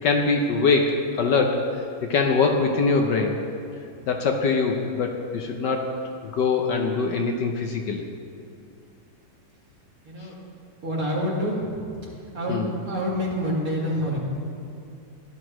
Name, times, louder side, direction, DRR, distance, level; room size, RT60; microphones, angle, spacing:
voice 1, 0.0-1.6 2.0-3.3 4.1-8.0 12.5-12.7, left 4 dB, 65° left, 3 dB, 1.3 m, -23 dB
voice 2, 10.0-10.4 10.8-11.9 12.3-14.2, equal, 45° right, -5 dB, 2.7 m, -27 dB
17.0 x 12.0 x 3.1 m, 2.5 s
omnidirectional pair, 2.2 m